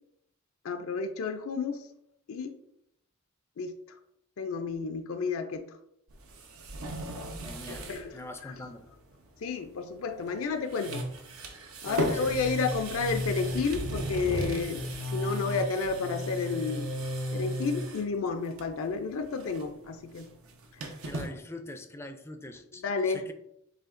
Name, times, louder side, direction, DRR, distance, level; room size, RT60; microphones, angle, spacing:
voice 1, 0.6-1.8 2.3-2.5 3.6-3.7 4.4-5.7 7.7-8.5 9.4-11.1 11.8-14.8 15.1-16.9 17.3-20.3 22.7-23.3, left 4 dB, 70° left, 7 dB, 0.4 m, -31 dB
sound 1, 6.1-8.1 8.4-8.5 10.2-10.4 10.7-18.1 18.5-18.9 19.2-21.3, equal, 80° right, 0.8 m, -35 dB
voice 2, 7.4-7.9 8.1-8.8 11.9-12.3 21.0-23.3, left 1 dB, 10° left, 7 dB, 0.4 m, -43 dB
7.4 x 2.8 x 2.5 m, 0.77 s
head